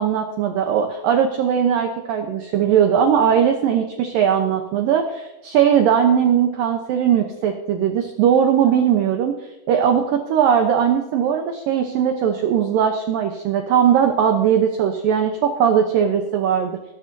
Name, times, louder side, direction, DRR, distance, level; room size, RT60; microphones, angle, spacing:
voice 1, 0.0-16.8, right 8 dB, 80° right, 4 dB, 2.0 m, -19 dB
20.5 x 11.5 x 2.8 m, 0.98 s
omnidirectional pair, 5.3 m